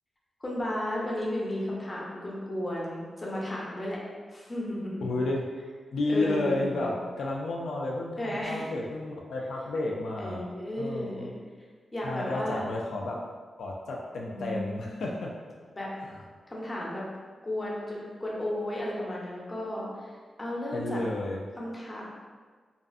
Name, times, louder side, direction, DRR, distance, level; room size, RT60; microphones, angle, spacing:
voice 1, 0.4-4.0 4.3-5.2 6.1-6.9 8.2-8.7 10.2-11.3 11.9-12.6 14.3-14.9 15.8-15.9 16.5-17.0 17.4-21.0 21.6-22.1, left 1 dB, 20° left, -4 dB, 0.5 m, -34 dB
voice 2, 5.0-5.4 5.9-10.5 10.8-11.3 12.0-13.2 13.6-15.3 20.7-21.4, left 2 dB, 85° left, -2 dB, 0.3 m, -31 dB
2.5 x 2.4 x 2.4 m, 1.5 s
wide cardioid pair, 150°, 0 cm